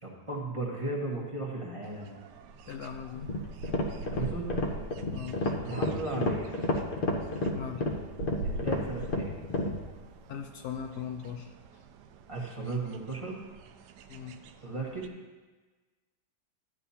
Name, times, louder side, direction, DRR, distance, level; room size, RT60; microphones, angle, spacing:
voice 1, 0.0-2.2 4.0-4.5 5.6-6.5 7.0-7.1 8.4-9.4 12.3-13.4 14.6-15.1, right 2 dB, 20° right, -4 dB, 1.4 m, -35 dB
sound 1, 1.8-15.1, right 3 dB, 90° right, 1.2 m, -45 dB
voice 2, 2.7-3.3 5.1-5.5 7.5-7.8 10.3-11.5 14.1-14.4, left 8 dB, 70° left, 4 dB, 1.2 m, -39 dB
sound 2, 3.1-9.8, left 1 dB, 40° left, 0.9 m, -31 dB
12.5 x 10.0 x 2.8 m, 1.3 s
omnidirectional pair, 1.8 m